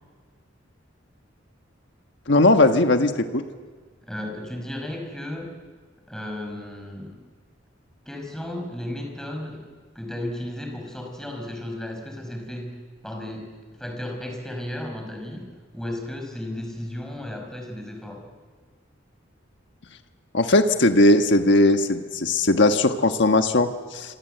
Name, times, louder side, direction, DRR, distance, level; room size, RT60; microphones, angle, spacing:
voice 1, 2.3-3.4 20.3-24.2, left 2 dB, 65° left, 7 dB, 1.4 m, -19 dB
voice 2, 4.0-5.5 6.1-7.2 8.1-9.6 9.9-12.8 13.0-13.5 13.8-15.5 15.7-18.2, left 1 dB, 5° left, 2 dB, 5.6 m, -34 dB
27.0 x 26.5 x 8.0 m, 1.5 s
head